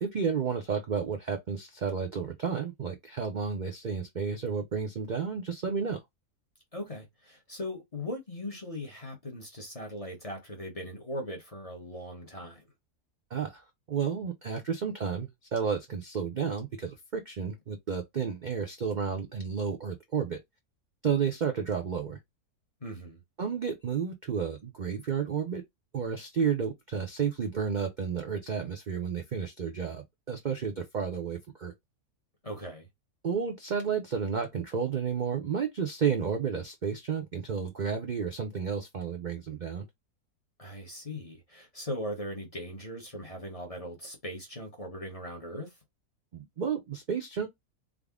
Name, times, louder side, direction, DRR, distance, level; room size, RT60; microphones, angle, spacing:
voice 1, 0.0-6.0 13.3-20.4 21.0-22.2 23.4-25.6 25.9-31.7 33.2-39.8 46.3-47.5, right 6 dB, 85° right, 0.4 m, -31 dB
voice 2, 6.7-12.7 22.8-23.2 32.4-32.9 40.6-45.8, left 1 dB, 30° left, 0.7 m, -39 dB
3.6 x 2.0 x 3.5 m
omnidirectional pair, 1.6 m